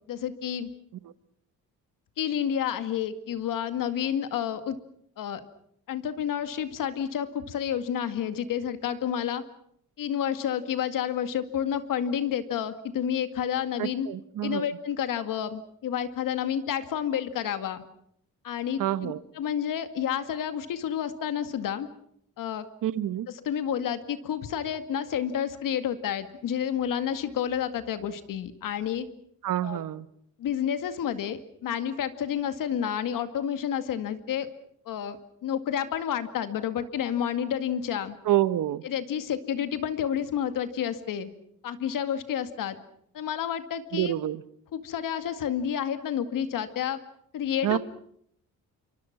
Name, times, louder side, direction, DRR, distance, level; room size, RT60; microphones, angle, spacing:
voice 1, 0.1-0.7 2.2-4.8 5.2-5.4 5.9-9.4 10.0-14.1 14.4-17.8 18.4-21.9 22.4-22.7 23.3-29.1 29.6-29.8 30.4-34.5 34.9-38.2 38.8-41.3 41.6-42.8 43.1-44.2 44.7-47.0 47.3-47.8, left 9 dB, 80° left, 10 dB, 2.2 m, -30 dB
voice 2, 13.8-14.7 18.8-19.2 22.8-23.3 29.4-30.1 38.3-38.8 43.9-44.4 47.6-47.8, right 13 dB, 75° right, 15 dB, 1.2 m, -27 dB
28.0 x 24.0 x 6.0 m, 0.69 s
cardioid pair, 150°, 32 cm